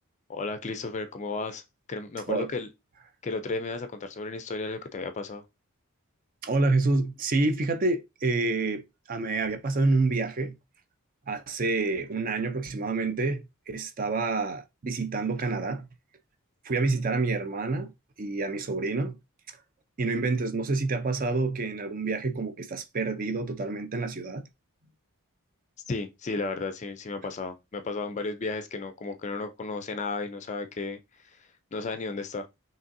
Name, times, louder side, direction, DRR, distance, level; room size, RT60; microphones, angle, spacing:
voice 1, 0.3-1.6 1.9-2.7 3.2-5.4 25.9-31.0 31.4-32.5, left 3 dB, 30° left, 0.4 m, -33 dB
voice 2, 6.4-10.6 11.3-15.9 16.6-17.9 18.2-19.2 20.0-24.4, right 3 dB, 40° right, 0.5 m, -28 dB
5.2 x 3.0 x 2.6 m
head